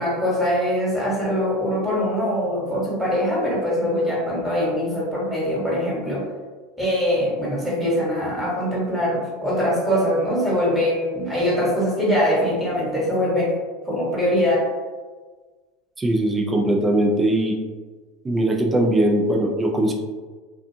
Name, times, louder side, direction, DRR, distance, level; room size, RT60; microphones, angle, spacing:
voice 1, 0.0-6.2 6.8-13.5 13.8-14.7, equal, 5° right, -6 dB, 1.3 m, -22 dB
voice 2, 16.0-17.6 18.2-19.9, right 1 dB, 20° right, 1 dB, 0.5 m, -20 dB
2.4 x 2.3 x 2.7 m, 1.4 s
hypercardioid pair, 90°, 0 cm